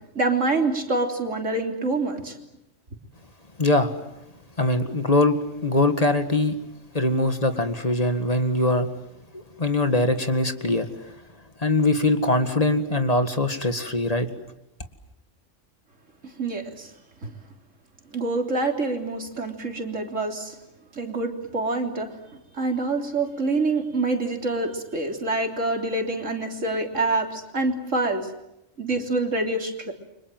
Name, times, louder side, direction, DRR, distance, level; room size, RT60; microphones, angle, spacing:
voice 1, 0.2-2.4 16.2-16.9 17.2-17.3 18.1-20.6 20.9-22.2 22.5-28.3 28.8-29.9, right 2 dB, 90° right, 4 dB, 3.8 m, -26 dB
voice 2, 3.6-4.0 4.6-6.6 6.9-8.9 9.3-10.9 11.6-14.3, left 2 dB, 30° left, 8 dB, 2.0 m, -22 dB
30.0 x 25.5 x 7.8 m, 0.87 s
omnidirectional pair, 1.3 m